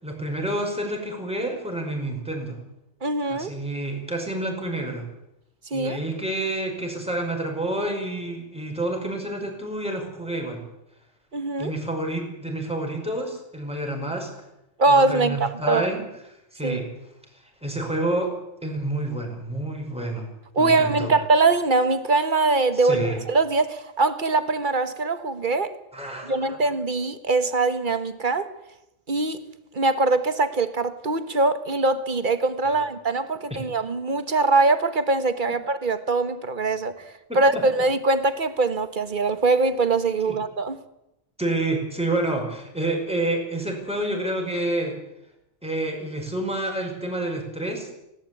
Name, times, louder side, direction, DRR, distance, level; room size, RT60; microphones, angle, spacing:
voice 1, 0.0-2.6 3.3-5.1 5.7-10.6 11.6-14.3 14.9-16.0 16.5-16.9 17.3-20.3 20.6-21.1 22.8-23.2 25.9-26.6 32.7-32.8 37.3-37.6 40.2-40.4 41.4-45.0 45.6-47.9, right 1 dB, 5° right, 5.4 m, -29 dB
voice 2, 3.0-3.5 5.7-6.0 11.3-11.7 14.8-15.9 16.6-16.8 20.5-25.7 26.2-28.5 29.1-29.4 29.7-40.8, right 3 dB, 45° right, 1.5 m, -22 dB
19.5 x 17.5 x 8.6 m
omnidirectional pair, 1.2 m